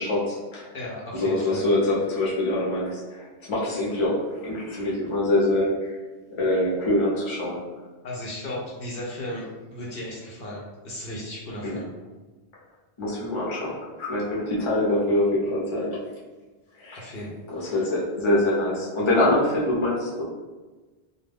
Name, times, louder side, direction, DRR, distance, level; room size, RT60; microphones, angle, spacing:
voice 1, 0.0-0.7 1.1-6.0 6.4-7.6 11.6-11.8 13.0-16.0 16.8-17.1 17.5-20.2, left 1 dB, 30° left, -6 dB, 0.7 m, -24 dB
voice 2, 0.7-1.6 8.0-11.9 17.0-17.8, left 1 dB, 60° left, -5 dB, 0.8 m, -35 dB
2.2 x 2.2 x 3.4 m, 1.2 s
omnidirectional pair, 1.1 m